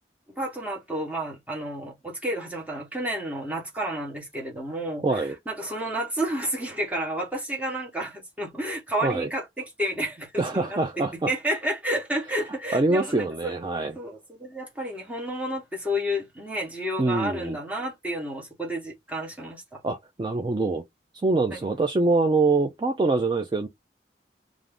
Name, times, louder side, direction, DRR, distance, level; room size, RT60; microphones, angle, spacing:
voice 1, 0.3-13.5 13.9-19.8 21.5-21.6, right 1 dB, 10° right, 0.9 m, -31 dB
voice 2, 5.0-5.4 9.0-9.3 10.4-11.3 12.7-14.0 17.0-17.6 19.8-20.8 21.2-23.7, right 3 dB, 25° right, 0.3 m, -24 dB
2.6 x 2.4 x 3.3 m
head